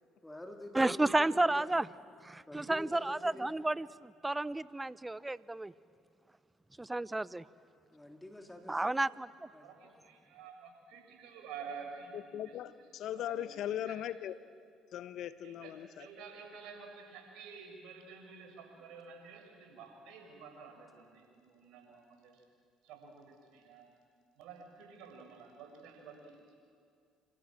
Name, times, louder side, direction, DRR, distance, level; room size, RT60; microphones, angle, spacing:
voice 1, 0.2-1.7 2.5-3.5 6.8-6.9 7.9-9.0 9.5-9.7, left 1 dB, 10° left, 3.5 m, -47 dB
voice 2, 0.7-1.9 2.2-5.7 6.8-7.4 8.7-9.5, right 2 dB, 15° right, 0.8 m, -32 dB
voice 3, 9.6-12.6 13.1-14.0 15.4-22.4 22.8-23.9 24.3-26.5, right 5 dB, 70° right, 6.5 m, -50 dB
voice 4, 12.3-14.3 14.9-16.1, left 11 dB, 60° left, 1.0 m, -39 dB
28.0 x 26.0 x 7.6 m
hypercardioid pair, 55°, 0 cm